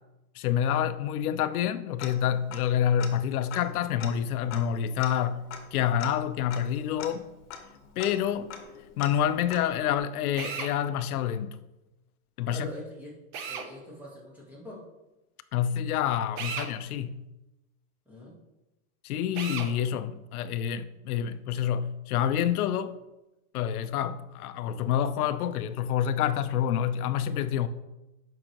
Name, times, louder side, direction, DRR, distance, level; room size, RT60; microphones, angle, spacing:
voice 1, 0.3-7.3 8.0-8.5 9.0-11.6 12.4-12.7 15.5-17.2 19.0-22.9 23.5-27.7, left 9 dB, 90° left, 0.6 m, -28 dB
Tick-tock, 2.0-2.7 3.0-3.1 3.5-10.0, left 7 dB, 55° left, 1.1 m, -43 dB
Drill, 10.4-10.7 13.3-13.7 16.4-16.7 19.3-19.7, right 6 dB, 35° right, 0.7 m, -35 dB
voice 2, 12.5-13.1 13.5-14.8 18.1-18.4, left 1 dB, 5° right, 1.2 m, -43 dB
8.7 x 5.7 x 2.9 m
supercardioid pair, 175°, 43 cm